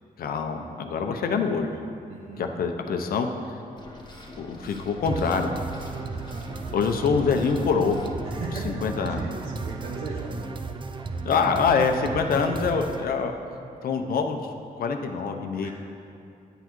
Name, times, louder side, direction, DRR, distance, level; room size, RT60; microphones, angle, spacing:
voice 1, 0.2-1.7 2.4-3.3 4.4-5.5 6.7-8.0 8.6-9.2 11.2-13.3 13.8-14.4 14.8-15.7, left 5 dB, 70° left, 5 dB, 0.7 m, -25 dB
voice 2, 2.1-2.5 6.1-6.7 8.2-10.5 15.6-15.7, right 3 dB, 90° right, -5 dB, 0.9 m, -38 dB
sound 1, 3.8-8.1, left 2 dB, 30° left, 1.1 m, -44 dB
sound 2, 5.1-13.1, right 4 dB, 30° right, 0.5 m, -34 dB
10.0 x 8.0 x 3.1 m, 2.6 s
cardioid pair, 90°, 16 cm